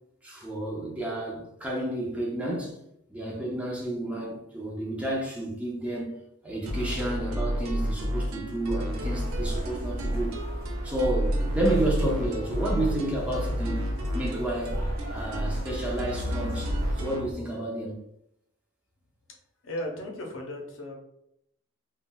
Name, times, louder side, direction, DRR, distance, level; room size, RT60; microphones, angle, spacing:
voice 1, 0.2-2.8 3.1-6.1 6.4-10.4 10.8-14.7 15.1-18.0, right 1 dB, 5° right, 0.6 m, -31 dB
sound 1, 6.7-17.3, equal, 80° right, 0.5 m, -31 dB
sound 2, 8.9-17.0, equal, 45° right, 0.8 m, -37 dB
voice 2, 19.6-20.9, left 1 dB, 70° left, 0.7 m, -35 dB
3.6 x 2.3 x 2.3 m
head